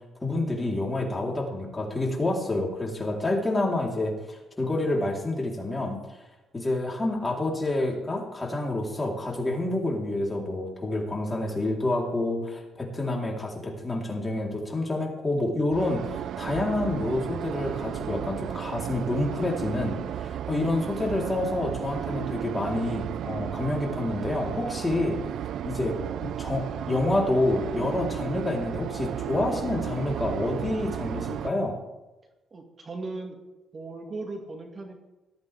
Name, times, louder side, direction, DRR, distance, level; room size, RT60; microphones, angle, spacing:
voice 1, 0.2-6.0 6.5-25.2 25.6-31.8, left 2 dB, 20° left, -1 dB, 4.0 m, -28 dB
sound 1, 15.7-31.5, right 10 dB, 75° right, 0.4 m, -34 dB
voice 2, 32.5-33.4 33.7-34.9, right 3 dB, 40° right, 3 dB, 2.3 m, -37 dB
18.0 x 13.5 x 3.6 m, 1.0 s
cardioid pair, 90°, 0 cm